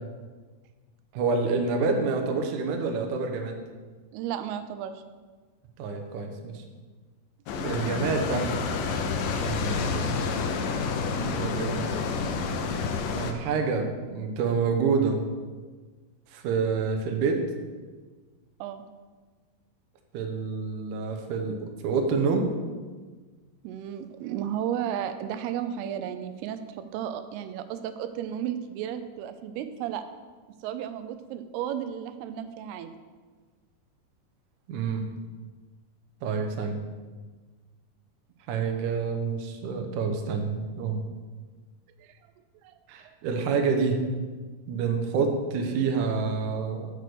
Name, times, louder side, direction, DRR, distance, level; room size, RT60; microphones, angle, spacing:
voice 1, 1.1-3.6 5.8-6.6 7.6-8.5 9.4-10.2 11.2-11.9 13.1-15.2 16.3-17.5 20.1-21.6 21.8-22.5 34.7-35.0 36.2-36.8 38.5-41.0 42.9-44.0 44.7-46.9, right 4 dB, 70° right, 3 dB, 1.9 m, -27 dB
voice 2, 4.1-5.0 18.6-18.9 23.6-26.6 26.9-30.0 30.6-32.9 42.0-42.1 42.6-42.8, right 10 dB, 85° right, 10 dB, 2.6 m, -33 dB
sound 1, 7.5-13.3, left 5 dB, 75° left, 2.3 m, -29 dB
6.6 x 6.2 x 6.6 m, 1.4 s
omnidirectional pair, 4.5 m